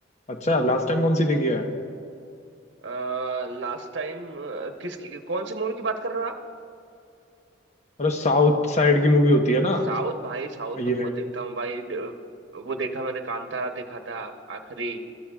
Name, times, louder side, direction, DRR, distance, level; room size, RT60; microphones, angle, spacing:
voice 1, 0.3-1.6 8.0-9.9 10.8-11.1, left 1 dB, 40° left, 4 dB, 1.0 m, -21 dB
voice 2, 2.8-6.4 9.9-12.2 12.5-15.0, right 3 dB, 75° right, 5 dB, 0.9 m, -31 dB
22.0 x 13.5 x 2.4 m, 2.5 s
head